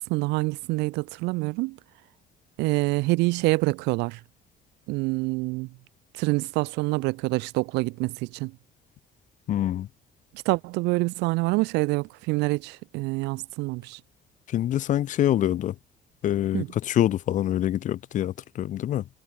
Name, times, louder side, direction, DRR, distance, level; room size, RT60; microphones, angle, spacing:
voice 1, 0.0-1.8 2.6-4.2 4.9-5.7 6.2-8.6 10.5-14.0 16.5-16.7, right 24 dB, 90° right, 0.4 m, -26 dB
voice 2, 9.5-9.9 14.5-15.8 16.2-19.1, left 12 dB, 50° left, 0.5 m, -25 dB
cardioid pair, 110°, 17 cm